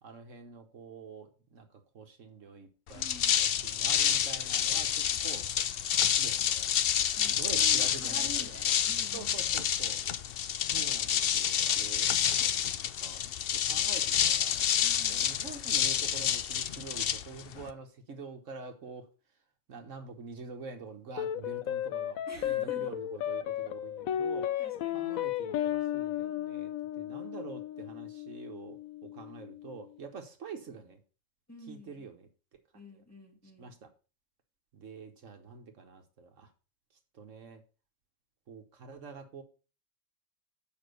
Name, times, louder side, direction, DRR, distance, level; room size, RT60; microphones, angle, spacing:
voice 1, 0.0-5.5 6.0-6.7 7.3-8.6 9.1-10.0 10.7-12.1 13.0-14.6 15.1-19.1 19.7-24.5 24.9-31.0 31.7-32.6 32.9-33.0 33.6-33.9 34.7-36.5 37.1-37.6 38.5-39.4, right 5 dB, 65° right, 5 dB, 1.4 m, -46 dB
sound 1, 2.9-17.7, left 9 dB, 60° left, 0.7 m, -29 dB
voice 2, 2.9-3.4 7.0-9.6 14.8-15.3 22.3-22.9 24.6-25.2 26.2-26.3 31.5-32.1 32.7-33.7, right 1 dB, 10° left, 0 dB, 2.4 m, -48 dB
sound 2, 21.2-29.8, left 11 dB, 90° left, 1.1 m, -34 dB
7.3 x 5.3 x 6.6 m, 0.35 s
omnidirectional pair, 1.4 m